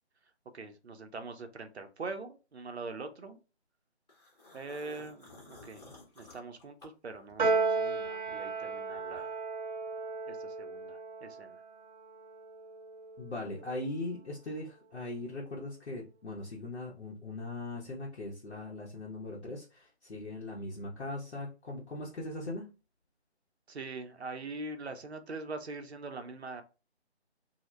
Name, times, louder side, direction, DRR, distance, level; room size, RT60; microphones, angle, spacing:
voice 1, 0.5-3.4 4.5-5.8 6.2-9.4 10.3-11.6 23.7-26.6, right 3 dB, 70° right, 8 dB, 0.5 m, -43 dB
sound 1, 4.1-7.6 8.0-9.5, left 2 dB, 35° left, 0.9 m, -54 dB
Piano, 7.4-13.9, right 4 dB, 40° right, 0.8 m, -35 dB
voice 2, 13.2-22.7, left 2 dB, 70° left, -4 dB, 0.7 m, -40 dB
2.1 x 2.0 x 3.1 m, 0.31 s
figure-of-eight pair, 150°, 34 cm